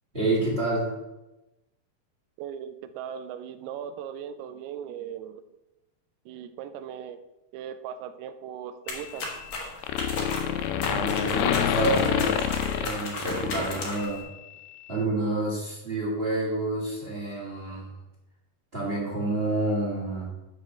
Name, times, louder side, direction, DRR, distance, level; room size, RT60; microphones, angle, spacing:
voice 1, 0.1-1.0 10.8-14.2 14.9-17.9 18.7-20.3, right 2 dB, 25° right, -4 dB, 1.4 m, -29 dB
voice 2, 2.4-5.4 6.3-7.2 7.5-9.3, right 9 dB, 85° right, 10 dB, 2.6 m, -38 dB
sound 1, 8.9-9.6 9.8-14.3, left 9 dB, 85° left, 2.6 m, -27 dB
sound 2, 8.9-14.2, left 3 dB, 50° left, 1.5 m, -36 dB
6.8 x 6.1 x 6.6 m, 0.98 s
omnidirectional pair, 4.4 m